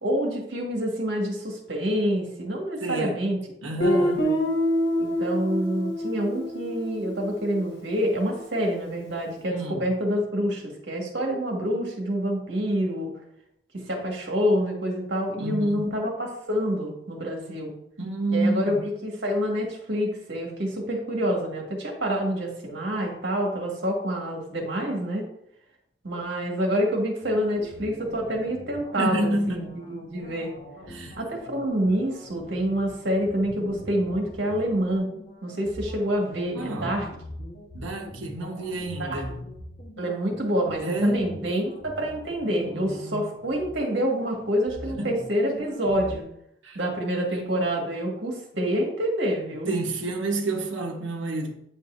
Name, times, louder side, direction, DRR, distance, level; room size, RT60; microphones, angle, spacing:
voice 1, 0.0-3.4 3.7-4.3 5.0-13.1 13.9-16.1 16.5-17.7 18.3-25.3 26.0-30.5 31.2-35.1 35.4-37.1 39.0-39.2 40.0-46.2 46.8-49.7, equal, 60° right, 1.9 m, -27 dB
voice 2, 2.8-3.2 3.6-4.2 9.5-9.8 15.3-15.9 18.0-18.9 29.0-29.6 30.9-31.2 36.5-37.0 37.7-39.4 40.8-41.4 42.6-43.3 45.0-45.2 46.6-46.8 49.7-51.5, right 1 dB, 80° right, 1.2 m, -29 dB
Guitar, 3.8-8.5, equal, 65° left, 1.4 m, -27 dB
sound 1, 27.2-46.2, equal, 40° left, 1.3 m, -43 dB
9.1 x 5.5 x 2.6 m
head